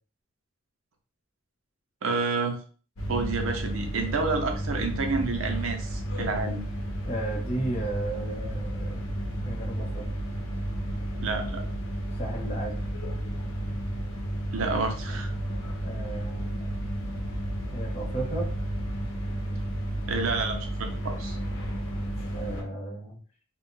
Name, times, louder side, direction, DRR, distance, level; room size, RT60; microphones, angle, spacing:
voice 1, 2.0-2.6 3.1-6.6 11.1-11.6 14.5-15.3 20.1-21.4, right 3 dB, 80° right, 4 dB, 0.6 m, -29 dB
sound 1, 3.0-22.6, right 1 dB, 90° left, 0.8 m, -32 dB
voice 2, 7.0-9.1 9.4-10.0 12.2-12.7 15.8-16.7 17.7-18.5 22.3-23.2, right 2 dB, 30° left, -2 dB, 0.6 m, -34 dB
2.4 x 2.1 x 3.7 m, 0.40 s
head